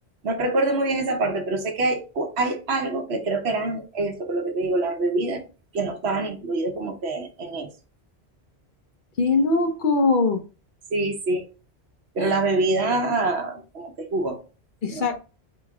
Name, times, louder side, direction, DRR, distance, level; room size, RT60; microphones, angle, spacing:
voice 1, 0.2-5.4 5.7-7.7 10.9-11.4 12.1-14.4 14.9-15.2, right 2 dB, 75° right, 1.1 m, -25 dB
voice 2, 9.2-10.4 12.2-12.3 14.8-15.2, left 3 dB, 55° left, 0.8 m, -21 dB
4.2 x 3.2 x 3.6 m
omnidirectional pair, 1.1 m